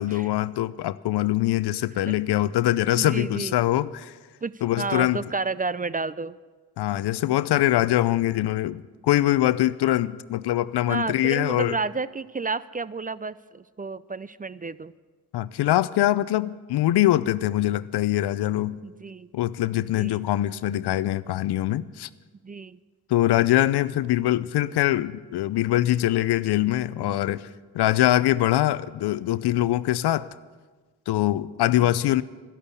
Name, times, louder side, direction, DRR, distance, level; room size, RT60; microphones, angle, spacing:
voice 1, 0.0-4.1 4.6-5.2 6.8-11.8 15.3-18.8 19.3-22.1 23.1-27.4 27.7-30.3 31.1-32.2, left 14 dB, 75° left, 18 dB, 0.6 m, -23 dB
voice 2, 3.0-3.5 4.4-6.4 10.9-14.9 18.8-19.3 19.9-20.3 22.4-22.8 31.8-31.9, right 4 dB, 20° right, 18 dB, 0.4 m, -31 dB
12.5 x 11.5 x 8.3 m, 1.4 s
supercardioid pair, 45°, 40 cm